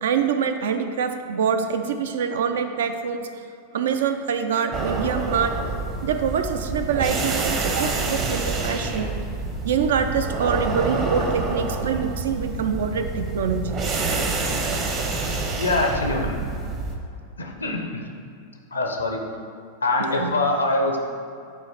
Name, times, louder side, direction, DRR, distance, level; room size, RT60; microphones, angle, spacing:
voice 1, 0.0-3.3 3.7-5.5 6.0-9.1 9.6-13.8 20.0-20.3, right 7 dB, 60° right, 7 dB, 0.4 m, -25 dB
sound 1, 4.7-17.0, right 3 dB, 35° right, 0.8 m, -27 dB
voice 2, 15.6-16.4 17.4-18.1 18.7-19.2 19.8-21.0, left 2 dB, 75° left, 2 dB, 0.7 m, -24 dB
8.3 x 3.1 x 4.4 m, 2.4 s
figure-of-eight pair, 90°, 0 cm